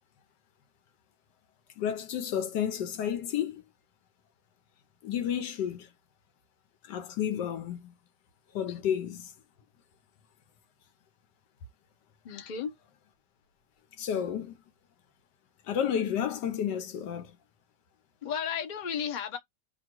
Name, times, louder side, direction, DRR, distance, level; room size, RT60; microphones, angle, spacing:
voice 1, 1.8-3.6 5.0-5.9 6.8-7.9 8.5-9.3 14.0-14.6 15.7-17.4, left 9 dB, 75° left, 1.4 m, -31 dB
voice 2, 12.2-12.7 18.2-19.4, left 7 dB, 40° left, 0.7 m, -33 dB
2.9 x 2.8 x 4.4 m
omnidirectional pair, 1.9 m